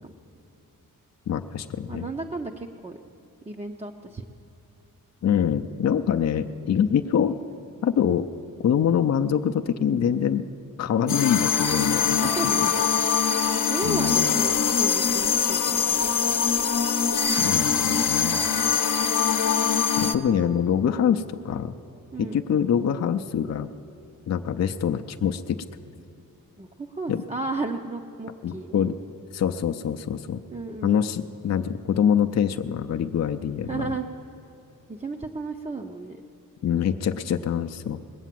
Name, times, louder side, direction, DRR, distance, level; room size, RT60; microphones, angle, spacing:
voice 1, 1.3-2.1 5.2-7.4 7.8-8.3 8.6-10.4 10.8-12.2 12.4-12.5 13.8-14.3 17.4-18.4 20.0-21.7 22.2-23.7 24.3-25.6 27.1-27.2 28.4-29.0 29.3-30.4 30.8-33.9 36.6-38.0, left 8 dB, 50° left, 7 dB, 0.5 m, -25 dB
voice 2, 1.9-3.0 3.5-4.2 11.0-11.5 12.1-12.9 13.3-13.4 13.7-16.4 22.1-22.4 26.6-28.9 30.5-31.0 33.7-34.1 34.9-36.2, right 3 dB, 20° right, 2 dB, 0.5 m, -34 dB
sound 1, 11.1-20.1, left 7 dB, 65° left, 0.8 m, -23 dB
20.0 x 8.2 x 7.5 m, 2.8 s
wide cardioid pair, 115°, 34 cm